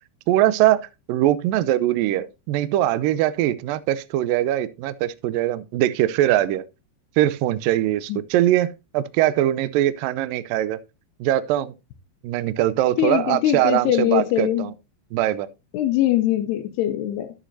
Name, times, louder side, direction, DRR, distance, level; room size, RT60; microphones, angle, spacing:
voice 1, 0.3-6.6 7.2-10.8 11.2-11.7 12.2-14.7 15.1-15.5, right 13 dB, 90° right, 2.0 m, -22 dB
voice 2, 13.0-14.6 15.7-17.3, left 13 dB, 85° left, 2.9 m, -22 dB
11.5 x 9.9 x 2.7 m
omnidirectional pair, 4.8 m